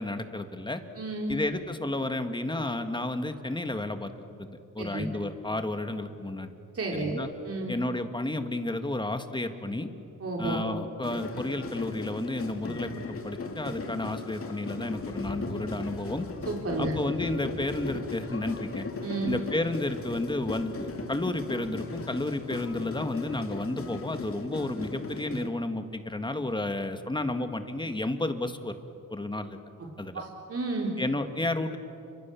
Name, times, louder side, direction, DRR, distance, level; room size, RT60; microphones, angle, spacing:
voice 1, 0.0-0.8 1.3-4.1 4.4-6.5 6.9-7.3 7.7-9.9 10.4-16.3 16.8-18.9 19.2-28.8 29.1-29.6 30.0-30.2 31.0-31.8, left 2 dB, 15° left, 7 dB, 1.8 m, -32 dB
voice 2, 1.0-1.4 4.8-5.1 6.7-7.2 7.5-7.7 10.2-10.6 16.5-16.9 19.0-19.4 30.1-30.9, right 2 dB, 45° right, -1 dB, 4.0 m, -31 dB
sound 1, 11.0-25.5, left 3 dB, 40° left, 2.4 m, -37 dB
29.5 x 25.5 x 7.1 m, 2.7 s
cardioid pair, 100°, 33 cm